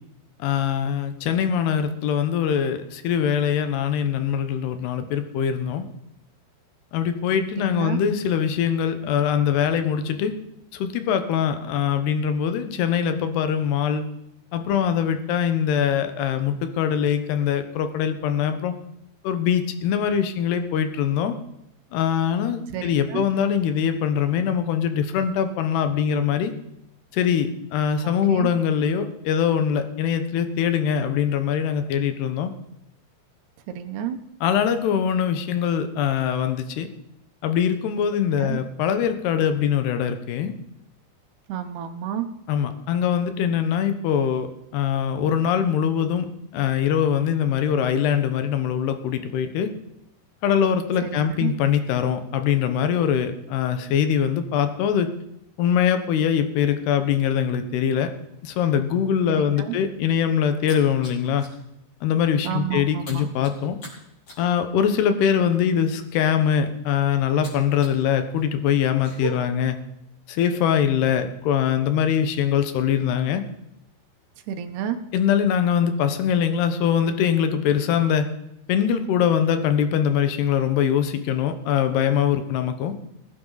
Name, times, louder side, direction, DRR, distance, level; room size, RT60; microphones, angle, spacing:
voice 1, 0.4-5.9 6.9-10.3 10.7-14.1 14.5-18.7 19.2-21.4 21.9-26.5 27.1-32.5 34.4-36.9 37.4-40.5 42.5-46.3 46.5-49.7 50.4-55.1 55.6-58.1 58.4-61.4 62.0-63.8 64.4-69.8 70.3-73.4 75.1-78.3 78.7-82.9, left 8 dB, 75° left, 9 dB, 3.0 m, -22 dB
voice 2, 7.6-8.0 22.7-23.2 28.0-28.5 33.7-34.2 38.3-38.6 41.5-42.3 51.0-51.5 59.3-59.8 62.4-63.3 74.5-75.0, right 10 dB, 75° right, 8 dB, 2.9 m, -30 dB
sound 1, 60.6-61.6 62.0-62.2 62.5-68.0 68.3-69.3, right 3 dB, 35° left, 5.8 m, -41 dB
20.5 x 9.4 x 4.0 m, 0.83 s
omnidirectional pair, 4.9 m